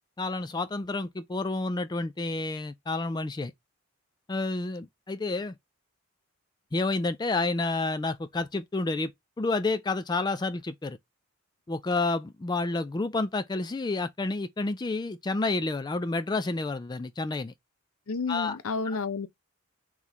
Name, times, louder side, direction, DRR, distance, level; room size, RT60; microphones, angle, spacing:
voice 1, 0.2-3.5 4.3-5.5 6.7-9.1 9.4-11.0 11.7-17.5 18.3-18.6 18.9-19.0, left 3 dB, 20° left, 0.3 m, -29 dB
voice 2, 18.1-19.3, left 4 dB, 80° left, 0.6 m, -31 dB
4.0 x 3.1 x 4.0 m
head